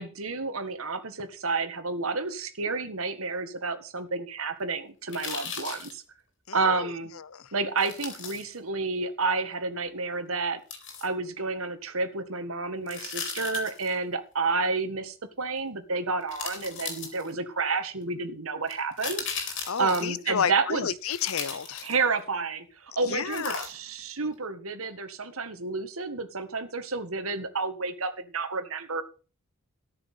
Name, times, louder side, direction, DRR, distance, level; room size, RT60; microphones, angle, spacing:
voice 1, 0.0-6.0 6.5-7.1 7.5-10.6 11.0-19.3 19.8-20.9 21.8-29.0, right 4 dB, 85° right, 1.8 m, -30 dB
sound 1, 5.1-5.9 7.8-8.4 10.7-11.1 12.9-13.9 15.6-15.7 16.3-17.5 18.7-20.2 21.1-22.2 23.3-24.0 24.3-24.4, left 6 dB, 60° left, 3.9 m, -37 dB
voice 2, 6.5-7.5 19.7-21.9 23.1-23.7, left 7 dB, 85° left, 0.7 m, -31 dB
13.5 x 6.6 x 7.4 m
head